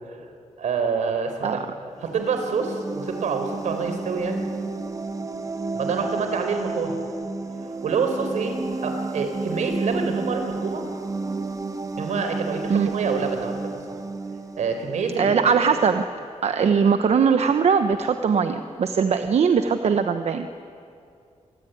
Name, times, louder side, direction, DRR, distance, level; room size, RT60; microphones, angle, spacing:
voice 1, 0.6-1.6 2.0-4.4 5.7-6.9 7.8-10.8 12.0-13.6 14.6-15.5, right 5 dB, 85° right, 6 dB, 4.4 m, -27 dB
sound 1, 2.0-15.5, right 3 dB, 30° right, 1.4 m, -31 dB
voice 2, 15.2-16.0 16.4-20.5, right 6 dB, 65° right, 8 dB, 1.0 m, -20 dB
27.5 x 20.5 x 9.4 m, 2.5 s
cardioid pair, 95°, 12 cm